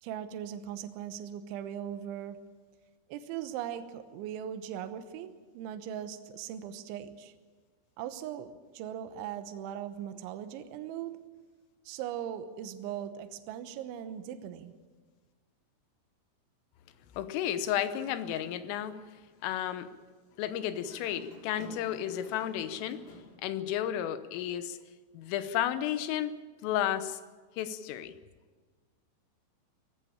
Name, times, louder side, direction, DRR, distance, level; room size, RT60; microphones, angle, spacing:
voice 1, 0.0-2.4 3.1-7.3 8.0-11.2 11.9-14.7, right 10 dB, 75° right, 9 dB, 3.3 m, -39 dB
voice 2, 17.1-19.0 19.4-19.9 20.4-23.1 23.4-24.8 25.1-27.2 27.6-28.1, left 11 dB, 85° left, 11 dB, 3.5 m, -32 dB
Dog, 17.8-18.9 19.3-19.5 20.7-23.4, left 3 dB, 40° left, 2.9 m, -51 dB
20.5 x 15.5 x 8.8 m, 1.4 s
omnidirectional pair, 5.7 m